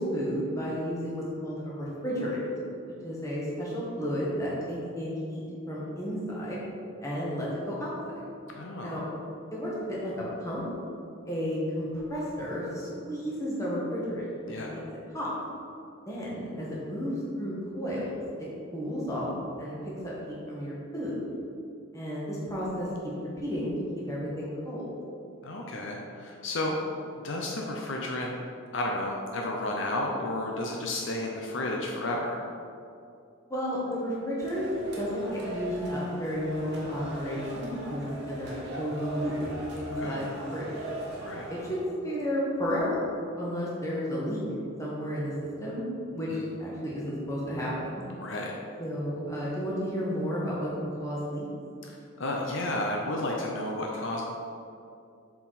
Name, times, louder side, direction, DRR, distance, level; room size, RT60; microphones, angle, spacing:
voice 1, 0.0-2.4 3.0-5.4 5.7-6.6 7.0-8.2 8.8-9.0 9.5-10.6 11.3-14.8 15.1-15.3 16.1-18.2 18.7-19.7 20.0-21.2 21.9-23.1 23.4-23.7 24.1-24.9 33.5-34.7 35.0-39.3 39.7-40.8 41.5-41.8 42.0-43.0 43.4-44.4 44.8-45.3 45.6-45.8 46.1-46.3 46.6-47.9 48.8-51.5, equal, 15° left, -6 dB, 1.6 m, -32 dB
voice 2, 8.5-8.9 14.5-14.8 25.4-26.8 27.2-28.4 28.7-32.4 40.0-40.2 41.2-41.5 46.3-46.4 48.2-48.5 51.8-54.2, left 1 dB, 65° left, -1 dB, 0.7 m, -32 dB
sound 1, 34.4-41.8, right 1 dB, 55° right, 1.4 m, -39 dB
7.2 x 4.7 x 4.1 m, 2.5 s
head